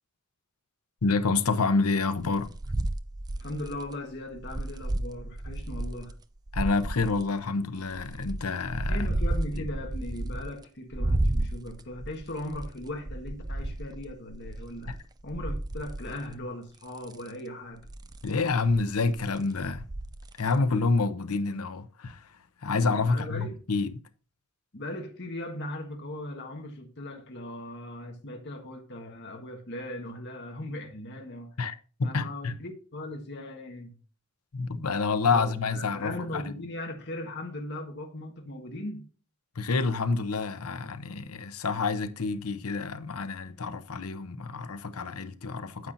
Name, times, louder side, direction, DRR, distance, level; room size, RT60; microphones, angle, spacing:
voice 1, 1.0-2.5 6.5-9.1 9.6-9.7 18.2-19.9 20.4-24.0 31.6-32.5 34.5-36.5 39.5-45.9, left 4 dB, 85° left, 0.8 m, -28 dB
sound 1, 2.2-6.1 6.5-7.2 7.8-10.6 10.9-16.4 16.8-17.3 17.8-20.6, right 1 dB, 20° right, 0.4 m, -33 dB
voice 2, 3.4-6.2 8.9-17.8 23.0-23.6 24.7-31.5 32.0-34.0 35.3-35.4 35.7-39.1, left 1 dB, 50° left, 1.4 m, -38 dB
9.6 x 8.2 x 2.7 m
head